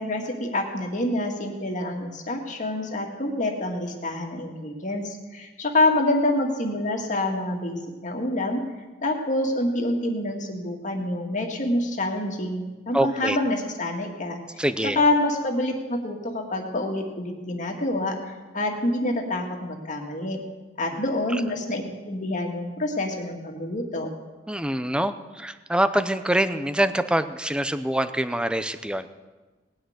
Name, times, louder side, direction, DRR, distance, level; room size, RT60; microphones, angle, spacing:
voice 1, 0.0-8.6 9.0-14.4 15.0-18.2 18.5-20.4 20.8-24.1, left 1 dB, 40° left, 2 dB, 2.2 m, -27 dB
voice 2, 12.9-13.4 14.6-15.0 21.3-21.4 24.5-29.1, right 1 dB, 5° right, 11 dB, 0.6 m, -25 dB
19.0 x 6.5 x 9.4 m, 1.2 s
head